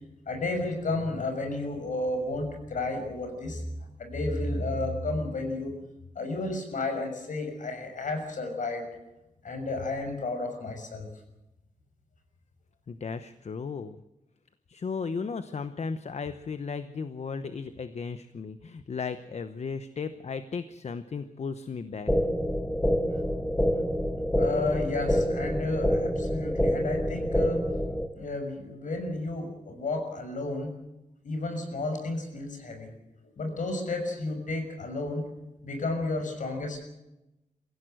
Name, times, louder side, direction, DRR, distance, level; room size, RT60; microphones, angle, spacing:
voice 1, 0.3-3.6 4.0-5.7 6.1-8.8 9.4-11.1 24.4-27.6 28.1-30.7 31.2-32.9 33.4-35.2 35.6-36.8, left 2 dB, 70° left, 5 dB, 6.2 m, -32 dB
voice 2, 12.9-14.0 14.7-22.1, left 5 dB, 50° left, 11 dB, 0.9 m, -35 dB
sound 1, 22.1-28.1, equal, 5° left, 1.8 m, -27 dB
24.0 x 16.0 x 7.8 m, 0.93 s
wide cardioid pair, 135°, 14 cm